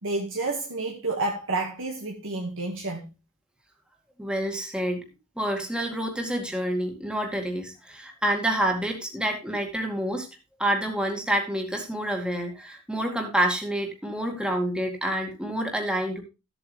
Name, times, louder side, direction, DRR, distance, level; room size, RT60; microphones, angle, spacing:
voice 1, 0.0-3.1, right 2 dB, 60° right, 1.9 m, -30 dB
voice 2, 4.2-5.0 5.4-10.3 10.6-16.2, right 1 dB, 5° right, 2.2 m, -28 dB
13.0 x 8.3 x 3.3 m
head